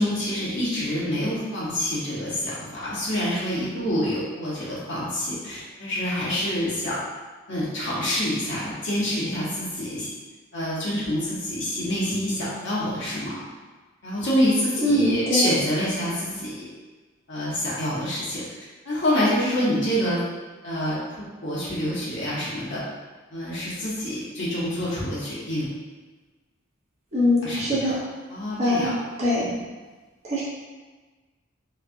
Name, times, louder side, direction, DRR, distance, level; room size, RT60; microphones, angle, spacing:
voice 1, 0.0-7.0 7.5-10.1 10.5-13.4 14.0-16.7 17.3-18.4 18.8-20.2 20.6-21.0 21.4-22.8 23.3-25.7 27.4-27.9 28.3-28.9 29.4-29.5, equal, 60° left, -8 dB, 1.0 m, -26 dB
voice 2, 14.8-15.5 27.1-28.0 28.6-28.9 29.2-29.4 30.2-30.4, left 1 dB, 35° right, -8 dB, 0.8 m, -22 dB
3.1 x 2.3 x 2.6 m, 1.3 s
head